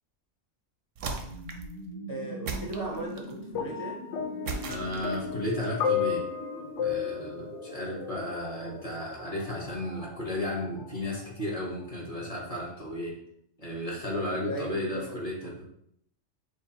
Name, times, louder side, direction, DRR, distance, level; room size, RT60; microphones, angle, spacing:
sound 1, 1.0-12.8, right 1 dB, 90° left, 1.8 m, -44 dB
sound 2, 1.0-1.8 2.5-3.4 4.5-5.3, right 4 dB, 90° right, 1.0 m, -37 dB
voice 1, 2.1-4.0 14.5-15.5, right 1 dB, 25° right, -2 dB, 0.5 m, -38 dB
sound 3, 3.5-8.7 9.6-9.7, left 8 dB, 75° left, 0.9 m, -33 dB
voice 2, 4.7-6.2 6.8-13.1 13.6-15.6, left 1 dB, 30° left, -3 dB, 1.3 m, -34 dB
6.4 x 2.3 x 3.0 m, 0.70 s
omnidirectional pair, 1.3 m